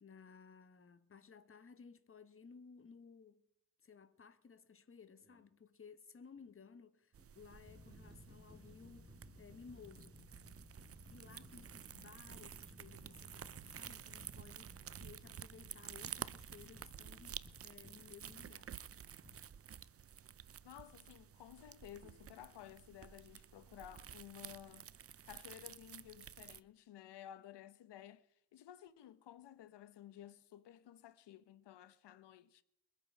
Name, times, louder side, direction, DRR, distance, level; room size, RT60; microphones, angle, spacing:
voice 1, 0.0-3.4 3.8-10.2 11.1-18.8, left 5 dB, 30° left, 1.1 m, -58 dB
sound 1, 5.2-5.5 6.4-6.5 7.2-18.5 19.2-19.4, left 1 dB, 10° right, 3.9 m, -59 dB
sound 2, 7.1-26.6, right 8 dB, 35° right, 0.5 m, -52 dB
voice 2, 20.6-24.9 25.2-28.3 28.5-32.6, left 11 dB, 85° left, 1.0 m, -55 dB
22.0 x 8.4 x 5.5 m
cardioid pair, 100°, 40 cm